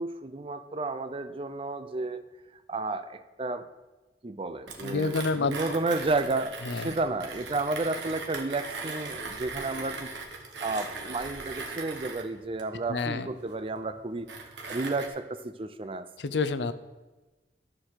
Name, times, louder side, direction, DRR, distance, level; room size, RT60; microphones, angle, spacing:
voice 1, 0.0-2.2 2.7-3.7 4.2-10.1 10.6-16.1, right 3 dB, 30° right, 11 dB, 0.5 m, -32 dB
Mechanisms, 4.7-15.1, right 3 dB, 85° right, 1.5 m, -40 dB
voice 2, 4.8-5.6 6.6-7.0 12.9-13.3 16.2-16.7, left 4 dB, 75° left, 13 dB, 0.6 m, -28 dB
13.0 x 4.8 x 6.5 m, 1.2 s
head